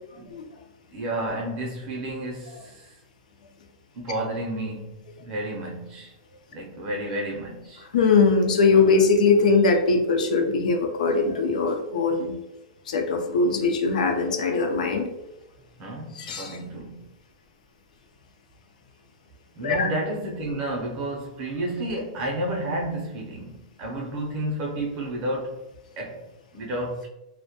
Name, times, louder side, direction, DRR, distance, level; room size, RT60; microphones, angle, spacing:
voice 1, 0.9-2.9 3.9-6.1 6.5-7.9 15.8-17.0 19.6-25.6 26.0-26.3 26.5-27.1, right 1 dB, 30° right, -1 dB, 0.5 m, -31 dB
voice 2, 7.9-12.3 12.9-15.1 16.2-16.6 19.6-19.9, left 4 dB, 85° left, 4 dB, 0.4 m, -21 dB
2.1 x 2.1 x 2.8 m, 0.93 s
supercardioid pair, 165°, 4 cm